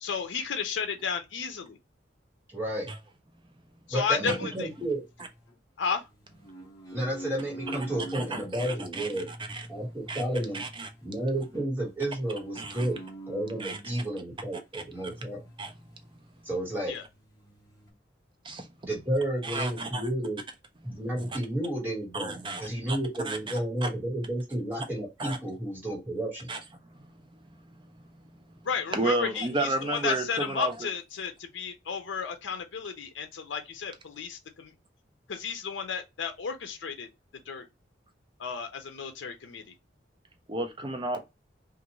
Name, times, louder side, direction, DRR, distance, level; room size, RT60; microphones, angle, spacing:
voice 1, 0.0-1.8 3.9-4.5 5.8-6.0 16.9-17.0 28.6-34.7 35.3-37.1 37.5-37.6 38.4-39.6, left 6 dB, 85° left, 0.5 m, -33 dB
voice 2, 2.5-2.9 3.9-5.0 6.9-9.3 9.7-10.6 11.0-13.0 13.3-15.4 16.4-16.9 18.8-20.4 20.8-26.5, right 1 dB, 10° right, 1.6 m, -31 dB
sound 1, 4.3-5.5 6.1-8.5 9.1-14.1 15.0-16.2 16.5-16.6 16.9-17.9, right 1 dB, 20° left, 1.1 m, -45 dB
voice 3, 8.1-9.1 9.5-9.6 10.1-10.2 10.5-10.9 12.6-12.9 13.6-13.8 14.7-14.8 15.6-15.7 18.4-18.7 19.4-20.0 22.1-22.6 22.9-23.0 23.3-23.4 23.8-23.9 25.2-25.4 26.5-26.6 26.8-27.0 28.9-30.9 40.5-41.2, right 2 dB, 25° right, 0.5 m, -32 dB
2.5 x 2.5 x 2.9 m
head